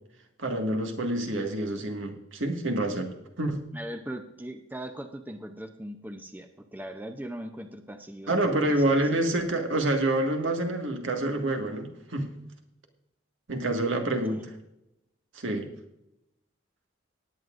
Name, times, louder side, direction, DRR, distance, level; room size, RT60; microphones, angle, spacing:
voice 1, 0.4-3.1 3.4-3.6 8.3-12.3 13.5-14.5 15.3-15.7, right 1 dB, 75° right, 3 dB, 1.8 m, -27 dB
voice 2, 3.7-8.3 8.6-9.0 14.0-14.4, right 1 dB, 10° right, 6 dB, 0.6 m, -40 dB
19.0 x 9.2 x 2.6 m, 0.84 s
head